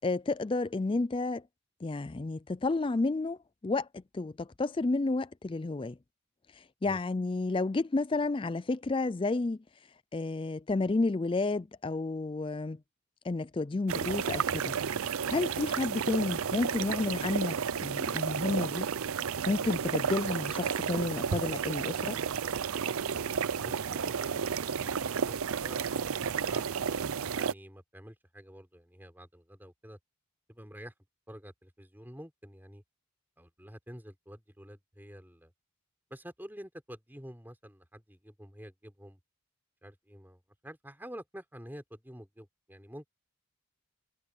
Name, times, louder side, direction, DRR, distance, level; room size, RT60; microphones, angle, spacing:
voice 1, 0.0-1.4 1.8-3.4 3.6-6.0 6.6-9.6 10.1-12.8 13.2-14.7 15.0-18.9 19.5-22.2, left 3 dB, 25° left, 0.3 m, -31 dB
sound 1, 13.9-27.5, right 7 dB, 75° right, 0.5 m, -32 dB
voice 2, 27.3-30.0 30.5-30.9 31.3-32.8 33.4-35.5 36.1-39.2 39.8-43.1, equal, 10° right, 4.5 m, -49 dB
head